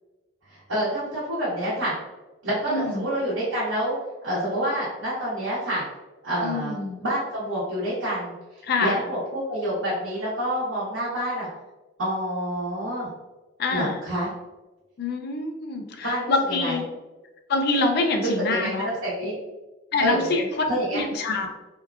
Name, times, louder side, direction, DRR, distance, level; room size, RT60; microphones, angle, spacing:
voice 1, 0.5-1.9 2.4-3.9 4.2-5.8 6.2-8.3 8.8-11.5 12.0-13.1 13.7-14.3 16.0-16.3 16.6-16.8 18.2-19.3 20.0-20.3 20.7-21.0, right 1 dB, 90° right, -10 dB, 0.9 m, -27 dB
voice 2, 2.7-3.1 6.4-7.0 8.6-9.0 13.6-14.0 15.0-16.8 17.5-18.9 19.9-20.6 20.9-21.5, left 3 dB, 55° left, 4 dB, 0.4 m, -25 dB
2.8 x 2.3 x 2.3 m, 1.1 s
head